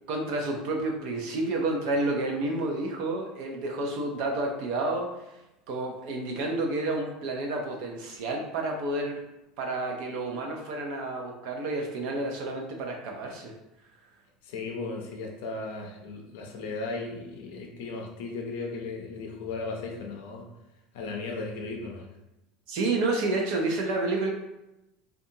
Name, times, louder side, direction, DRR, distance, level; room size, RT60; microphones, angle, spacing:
voice 1, 0.1-5.3 5.7-9.2 9.6-13.5 22.7-24.3, right 2 dB, 60° right, 1 dB, 0.4 m, -30 dB
voice 2, 14.4-20.5 20.9-22.1, left 3 dB, 85° left, 1 dB, 0.5 m, -36 dB
2.7 x 2.3 x 2.7 m, 0.94 s
cardioid pair, 170°, 0 cm